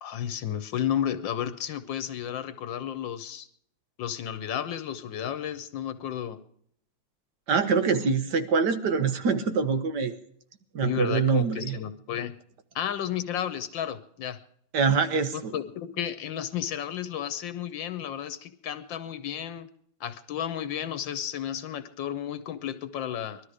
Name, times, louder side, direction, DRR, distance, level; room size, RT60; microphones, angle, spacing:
voice 1, 0.0-3.5 4.0-6.4 10.8-12.3 12.7-14.4 15.5-19.7 20.0-23.4, left 10 dB, 80° left, 12 dB, 1.6 m, -32 dB
voice 2, 7.5-10.1 10.7-11.8 14.7-15.6, right 5 dB, 65° right, 9 dB, 1.8 m, -24 dB
19.5 x 13.0 x 5.0 m, 0.65 s
omnidirectional pair, 2.1 m